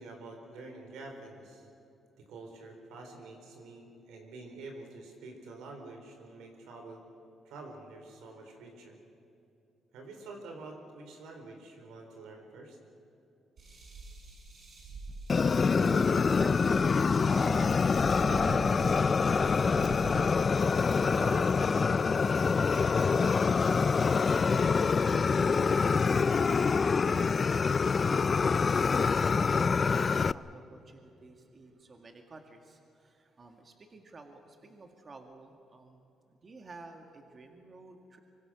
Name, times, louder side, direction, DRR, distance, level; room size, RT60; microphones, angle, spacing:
voice 1, 0.0-1.7 2.2-7.0 7.4-9.0 9.9-12.8, right 2 dB, 90° right, 3 dB, 4.3 m, -47 dB
sound 1, 13.6-22.7 23.5-23.9 24.6-24.7 25.1-25.9, right 3 dB, 55° right, 6.7 m, -47 dB
Fire, 15.3-30.3, left 5 dB, 40° left, 0.4 m, -26 dB
voice 2, 15.7-19.8 20.5-24.8 25.5-26.0 26.3-38.2, right 3 dB, 40° right, 4 dB, 2.2 m, -48 dB
24.5 x 24.5 x 6.4 m, 2.8 s
cardioid pair, 90°, 0 cm